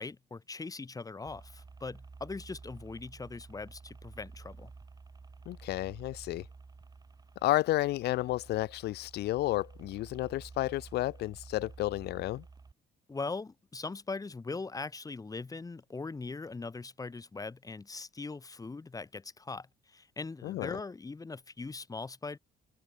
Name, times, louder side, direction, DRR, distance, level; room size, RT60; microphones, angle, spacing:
voice 1, 0.0-4.7 13.1-22.4, left 3 dB, 20° left, 7.9 m, -41 dB
sound 1, 1.3-12.7, right 4 dB, 25° right, 5.3 m, -51 dB
voice 2, 5.4-6.4 7.4-12.4 20.4-20.8, left 16 dB, 75° left, 1.6 m, -31 dB
open air
cardioid pair, 110°, 17 cm